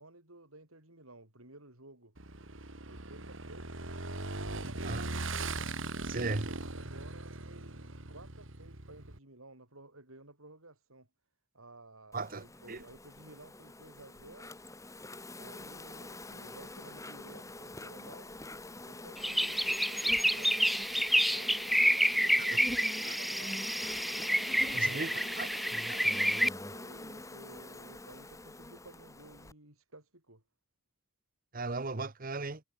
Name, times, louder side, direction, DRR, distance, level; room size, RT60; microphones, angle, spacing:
voice 1, 0.0-2.1 2.9-3.8 4.4-5.2 5.9-11.1 11.5-14.5 15.4-18.3 18.8-20.6 21.3-23.6 24.5-30.4, right 2 dB, 85° right, 7.5 m, -55 dB
Motorcycle / Engine, 2.2-9.2, right 2 dB, 65° right, 3.0 m, -40 dB
voice 2, 6.0-6.5 12.1-12.8 22.5-22.6 24.7-25.1 25.4-25.5 31.5-32.6, right 3 dB, 45° right, 1.2 m, -36 dB
Insect, 12.1-29.5, left 2 dB, 15° left, 2.8 m, -45 dB
sound 1, 19.2-26.5, equal, ahead, 0.9 m, -29 dB
head